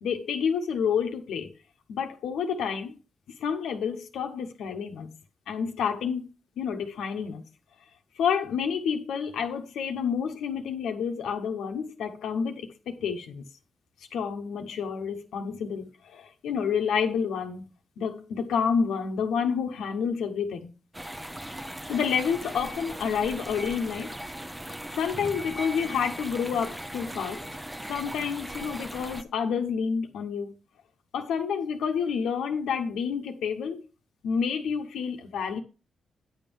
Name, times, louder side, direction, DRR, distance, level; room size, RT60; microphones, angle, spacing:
voice 1, 0.0-1.5 1.9-3.0 3.4-5.1 5.5-6.3 6.6-7.4 8.2-13.4 14.1-17.7 18.0-20.7 21.9-24.1 24.9-27.4 27.9-30.6 31.1-33.8 34.2-35.6, left 6 dB, 90° left, 0.9 m, -29 dB
sound 1, 20.9-29.2, right 1 dB, 10° right, 0.7 m, -38 dB
9.6 x 3.6 x 7.0 m
cardioid pair, 70°, 0 cm